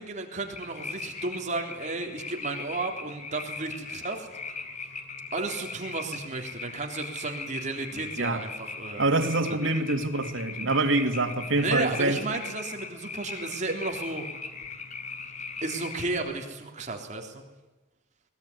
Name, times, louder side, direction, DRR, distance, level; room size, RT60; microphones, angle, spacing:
voice 1, 0.0-4.3 5.3-9.1 9.5-9.6 11.6-14.2 15.6-17.4, right 3 dB, 35° right, 3.6 m, -33 dB
sound 1, 0.5-16.2, left 4 dB, 40° left, 3.8 m, -39 dB
voice 2, 9.0-12.2, right 2 dB, 80° right, 2.4 m, -25 dB
22.5 x 20.0 x 9.8 m
head